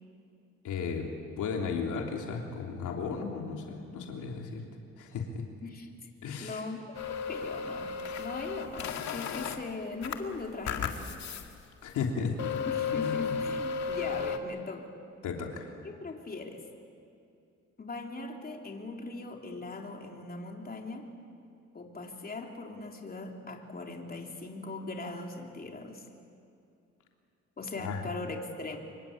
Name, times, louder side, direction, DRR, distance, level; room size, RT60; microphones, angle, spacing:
voice 1, 0.6-1.1 1.4-4.6 5.0-5.4 6.2-6.6 11.8-12.6 12.9-13.3 15.2-15.7 27.8-28.0, left 5 dB, 80° left, 1 dB, 3.3 m, -34 dB
voice 2, 5.6-6.1 6.4-7.0 7.3-11.1 12.7-14.9 15.8-16.7 17.8-21.1 21.7-26.0 27.6-28.8, left 3 dB, 30° left, 1 dB, 3.4 m, -40 dB
sound 1, 6.9-9.6 10.0-11.5 11.9-12.0 12.4-14.4, left 6 dB, 65° left, 2.1 m, -34 dB
26.0 x 23.0 x 8.8 m, 2.5 s
cardioid pair, 90°, 30 cm